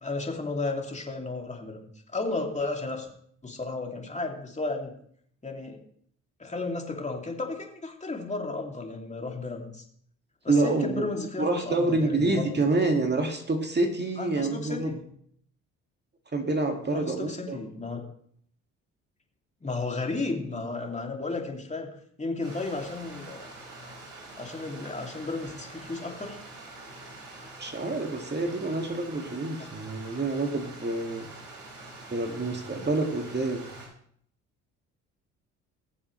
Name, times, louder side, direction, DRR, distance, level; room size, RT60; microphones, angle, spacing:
voice 1, 0.0-1.9 2.1-3.1 3.4-4.9 5.4-5.8 6.4-9.8 10.4-12.5 14.2-15.0 16.9-18.0 19.6-21.9 22.2-23.5 24.4-26.4 29.6-29.7, left 3 dB, 20° left, 1 dB, 2.7 m, -33 dB
voice 2, 10.5-11.0 11.4-14.9 16.3-17.6 27.6-31.3 32.1-33.7, right 2 dB, 30° right, 3 dB, 2.2 m, -27 dB
Stream, 22.4-33.9, right 2 dB, 65° right, 5.3 m, -45 dB
20.5 x 7.2 x 3.2 m, 0.64 s
hypercardioid pair, 55°, 36 cm